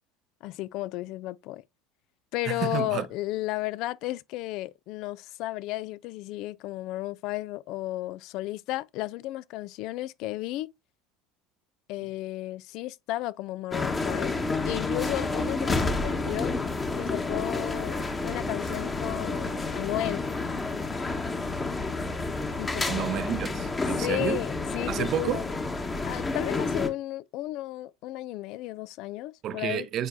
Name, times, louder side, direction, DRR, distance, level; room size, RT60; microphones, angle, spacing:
voice 1, 0.4-1.6 2.3-10.7 11.9-16.5 17.0-20.2 22.6-23.1 24.0-25.5 26.0-29.9, left 17 dB, 60° left, 0.4 m, -33 dB
voice 2, 2.4-3.0 22.9-24.4 24.9-25.5 29.4-30.1, right 10 dB, 50° right, 0.6 m, -30 dB
sound 1, 13.7-26.9, left 3 dB, 20° left, 1.2 m, -30 dB
7.8 x 4.6 x 2.7 m
hypercardioid pair, 75°, 0 cm